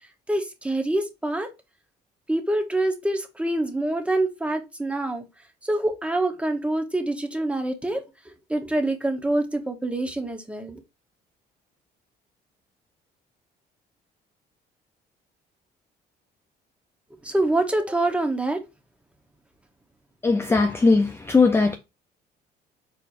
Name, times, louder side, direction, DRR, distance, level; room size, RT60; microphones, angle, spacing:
voice 1, 0.3-1.5 2.3-5.2 5.6-10.8 17.2-18.6, right 1 dB, 5° right, 0.9 m, -26 dB
voice 2, 20.2-21.7, left 3 dB, 15° left, 0.4 m, -19 dB
4.4 x 4.0 x 2.5 m
cardioid pair, 110°, 17 cm